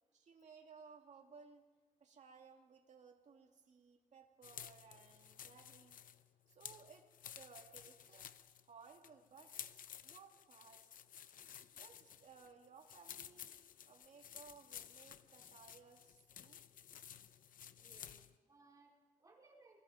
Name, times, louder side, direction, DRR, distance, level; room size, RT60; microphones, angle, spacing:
voice 1, 0.1-1.7 2.0-6.0 6.5-7.1 7.4-8.3 8.7-9.6 10.0-10.9 11.7-13.5 13.9-16.7, right 5 dB, 55° right, 2 dB, 2.3 m, -60 dB
sound 1, 4.4-18.3, left 9 dB, 70° left, 0.7 m, -54 dB
voice 2, 17.7-19.8, right 3 dB, 25° right, -2 dB, 4.5 m, -66 dB
28.5 x 21.0 x 5.0 m, 1.3 s
wide cardioid pair, 155°, 14 cm